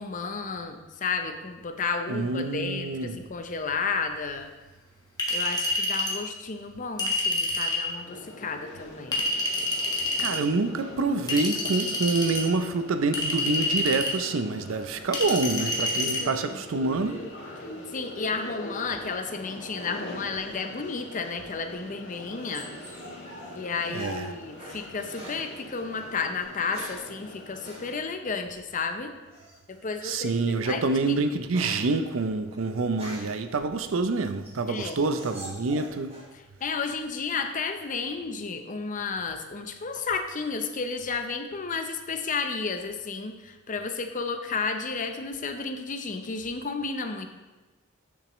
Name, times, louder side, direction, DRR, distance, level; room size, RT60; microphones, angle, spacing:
voice 1, 0.0-4.5 5.3-9.2 16.1-16.6 17.6-22.7 23.5-29.1 29.7-31.2 34.7-35.0 36.3-47.3, left 4 dB, 40° left, 0.6 m, -32 dB
voice 2, 2.1-3.2 10.2-17.3 23.9-24.3 30.0-36.2, right 3 dB, 75° right, 0.5 m, -27 dB
Chink clink, 5.2-6.2 7.0-7.8 9.1-10.4 11.3-12.4 13.1-14.2 15.1-16.2, left 2 dB, 20° left, 1.3 m, -27 dB
sound 1, 8.0-28.0, left 1 dB, 60° left, 2.2 m, -43 dB
sound 2, 21.6-24.8 25.1-25.4 26.4-27.1 27.6-27.8 29.3-29.7 30.2-30.4 30.8-33.4 34.0-36.3 36.6-37.2, equal, 30° right, 2.3 m, -44 dB
8.6 x 6.9 x 3.0 m
head